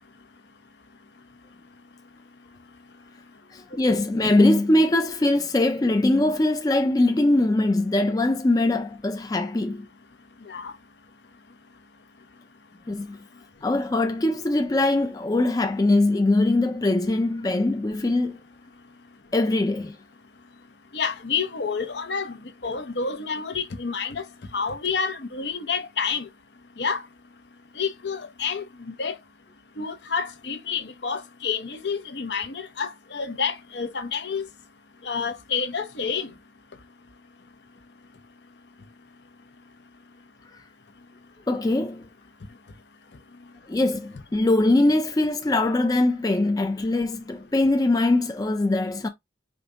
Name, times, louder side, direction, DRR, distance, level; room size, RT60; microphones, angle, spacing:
voice 1, 3.5-9.9 12.9-13.2 13.6-18.4 19.3-20.0 41.5-42.1 43.7-49.1, left 2 dB, 20° left, 0.4 m, -22 dB
voice 2, 20.9-22.4 22.6-24.2 24.5-26.3 26.8-27.0 27.8-29.2 29.8-34.5 35.0-36.3, left 5 dB, 70° left, 0.8 m, -29 dB
5.1 x 2.2 x 3.9 m
head